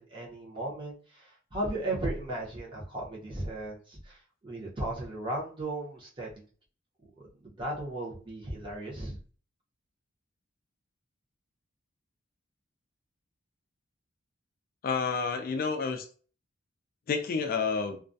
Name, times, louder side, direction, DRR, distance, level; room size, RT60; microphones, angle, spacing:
voice 1, 0.0-6.4 7.2-9.2, right 1 dB, 25° right, -4 dB, 0.8 m, -36 dB
voice 2, 14.8-16.1 17.1-18.0, left 5 dB, 50° left, 5 dB, 0.3 m, -29 dB
2.3 x 2.1 x 2.5 m, 0.40 s
head